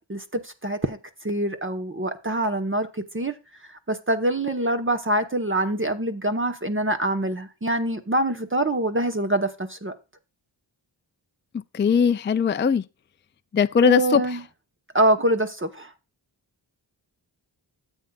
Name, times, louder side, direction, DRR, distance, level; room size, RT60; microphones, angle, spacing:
voice 1, 0.0-3.3 3.7-9.9 13.8-14.4 14.9-15.9, right 1 dB, 25° right, 1.0 m, -25 dB
voice 2, 11.7-12.8 13.5-14.2, left 6 dB, 25° left, 0.4 m, -19 dB
13.5 x 8.2 x 2.4 m
wide cardioid pair, 65°, 45 cm